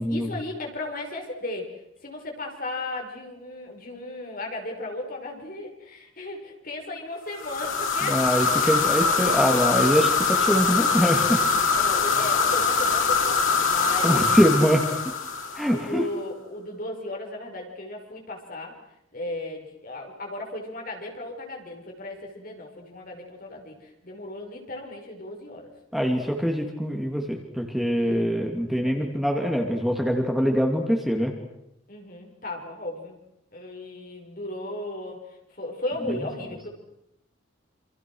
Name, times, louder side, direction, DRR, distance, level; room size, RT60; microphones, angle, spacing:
voice 1, 0.0-1.7 2.0-9.1 11.7-15.0 15.7-18.7 19.1-25.7 27.9-29.3 31.9-33.2 33.5-35.2 35.5-36.7, left 2 dB, 45° left, 1 dB, 6.0 m, -36 dB
sound 1, 7.4-15.9, left 4 dB, 90° left, 3.7 m, -23 dB
voice 2, 8.0-11.4 14.0-14.8 15.5-16.1 25.9-31.3 36.1-36.2, equal, ahead, 1 dB, 2.7 m, -23 dB
28.0 x 27.5 x 6.4 m, 0.82 s
head